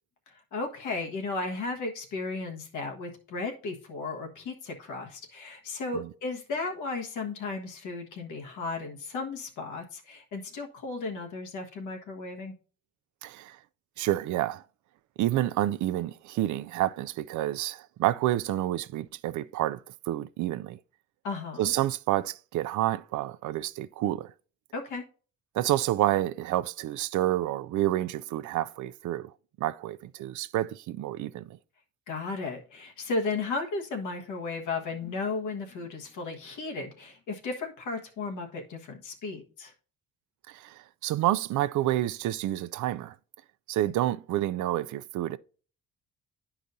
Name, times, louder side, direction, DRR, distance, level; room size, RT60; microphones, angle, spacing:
voice 1, 0.5-12.5 21.2-21.7 24.7-25.0 32.1-39.7, left 3 dB, 80° left, 1.4 m, -35 dB
voice 2, 13.2-13.6 14.0-14.6 15.2-20.8 21.6-24.3 25.5-29.3 29.6-31.6 40.5-43.1 43.7-45.4, right 14 dB, 75° right, 0.5 m, -29 dB
10.0 x 4.9 x 2.6 m
cardioid pair, 90°, 30 cm